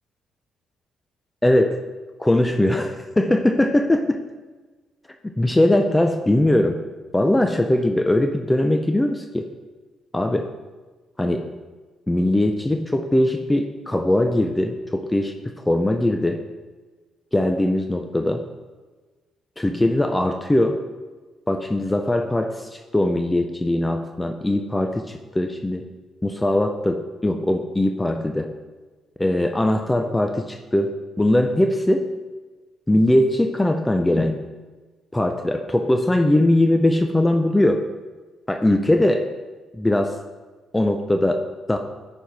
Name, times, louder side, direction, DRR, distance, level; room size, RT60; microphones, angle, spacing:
voice 1, 1.4-1.8 2.2-4.2 5.4-6.8 7.1-9.5 10.1-10.5 11.2-11.5 12.1-16.4 17.3-18.4 19.6-20.8 21.5-25.8 26.2-28.5 29.2-32.1 32.9-34.4 35.1-37.8 38.5-39.2 39.7-40.1 40.7-41.4 41.7-41.8, left 1 dB, 10° left, 5 dB, 0.6 m, -20 dB
11.0 x 4.4 x 4.7 m, 1.3 s
cardioid pair, 90°, 0 cm